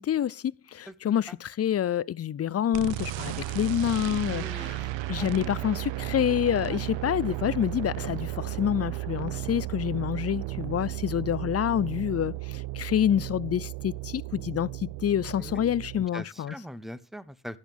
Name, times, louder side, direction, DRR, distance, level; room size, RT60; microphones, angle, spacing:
voice 1, 0.0-4.8 5.1-16.5, left 10 dB, 35° left, 0.4 m, -27 dB
voice 2, 0.9-1.4 4.3-4.8 5.2-5.3 6.7-6.8 15.4-15.7 16.0-17.6, equal, ahead, 0.9 m, -42 dB
sound 1, 2.7-16.1, right 17 dB, 85° right, 0.7 m, -34 dB
11.5 x 10.5 x 3.5 m
supercardioid pair, 50°, 44 cm